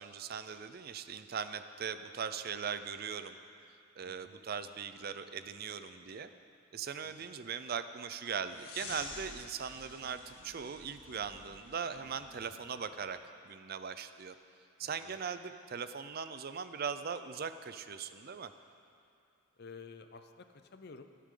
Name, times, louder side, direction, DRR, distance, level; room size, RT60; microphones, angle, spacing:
voice 1, 0.0-3.4 4.0-6.3 6.7-13.2 13.4-14.3 14.8-18.5, right 6 dB, 45° right, 11 dB, 0.5 m, -40 dB
voice 2, 4.0-4.3 7.0-7.1 14.8-15.2 19.6-21.0, left 4 dB, 50° left, 8 dB, 0.6 m, -51 dB
sound 1, 8.5-12.9, left 3 dB, 85° left, 1.7 m, -50 dB
22.0 x 8.3 x 3.8 m, 2.6 s
head